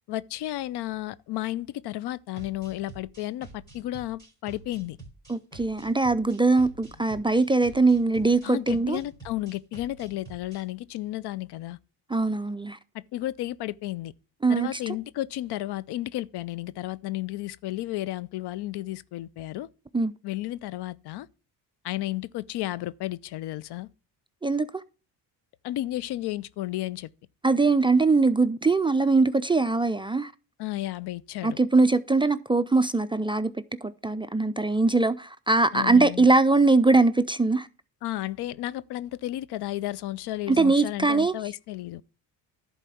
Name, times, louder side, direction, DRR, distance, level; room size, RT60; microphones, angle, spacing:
voice 1, 0.1-5.0 8.4-11.8 12.9-14.1 14.5-19.7 20.2-21.3 21.8-23.9 25.6-27.1 30.6-31.6 35.7-36.3 38.0-42.0, left 15 dB, 65° left, 0.5 m, -33 dB
sound 1, 2.4-10.6, right 3 dB, 10° left, 3.7 m, -48 dB
voice 2, 5.3-9.0 12.1-12.8 14.4-14.8 19.9-20.1 24.4-24.8 27.4-30.3 31.4-33.5 33.8-37.7 40.5-41.3, right 3 dB, 15° right, 0.4 m, -22 dB
11.0 x 4.2 x 6.9 m
cardioid pair, 90°, 42 cm